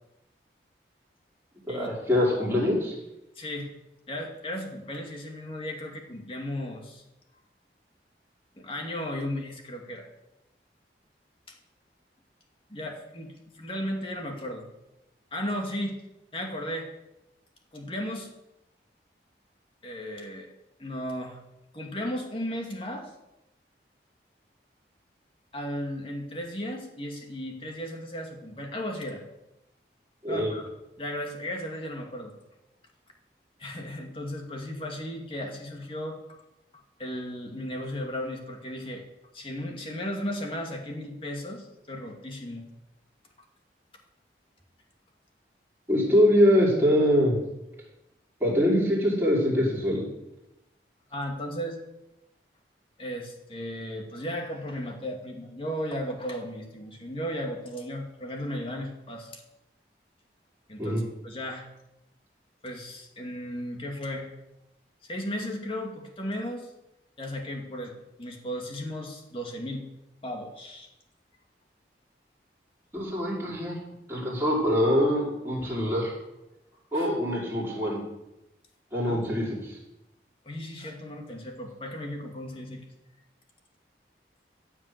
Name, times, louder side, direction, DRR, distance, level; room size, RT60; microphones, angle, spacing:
voice 1, 1.7-2.9 30.2-30.5 45.9-47.4 48.4-50.0 60.8-61.0 72.9-73.8 74.1-76.1 76.9-78.0 78.9-79.8, equal, 15° right, -6 dB, 5.6 m, -24 dB
voice 2, 3.4-3.7 4.1-7.0 8.6-10.1 11.5-11.6 12.7-14.7 15.3-16.0 16.3-16.9 17.7-18.3 19.8-20.5 20.8-21.4 21.7-23.1 25.5-29.2 30.3-30.7 31.0-32.3 33.6-36.4 37.0-39.0 39.3-42.6 51.1-51.8 53.0-59.4 60.7-61.7 62.6-64.3 65.1-66.7 67.2-67.9 68.2-69.9 70.2-70.9 76.9-77.2 79.1-79.2 80.4-82.8, equal, 30° left, 2 dB, 2.4 m, -35 dB
15.5 x 7.5 x 8.2 m, 0.92 s
head